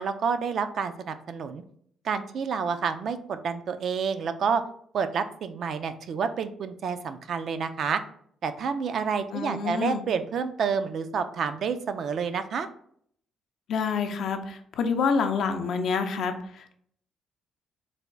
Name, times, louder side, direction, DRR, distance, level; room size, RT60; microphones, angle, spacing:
voice 1, 0.0-1.6 2.0-4.6 4.9-8.0 8.4-12.7, right 6 dB, 60° right, 9 dB, 0.3 m, -29 dB
voice 2, 9.3-10.0 13.7-16.8, left 5 dB, 70° left, 6 dB, 0.4 m, -27 dB
3.3 x 2.2 x 3.7 m, 0.64 s
cardioid pair, 90°, 0 cm